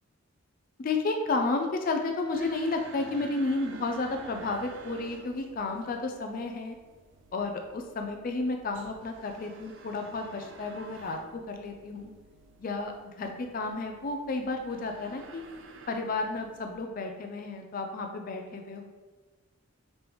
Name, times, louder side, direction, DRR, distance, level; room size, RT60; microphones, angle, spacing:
voice 1, 0.8-6.8 7.3-12.1 12.6-15.4 15.9-18.9, left 3 dB, 40° left, 4 dB, 0.3 m, -32 dB
sound 1, 2.3-16.8, right 3 dB, 55° right, 0.4 m, -51 dB
5.2 x 3.3 x 3.0 m, 1.3 s
head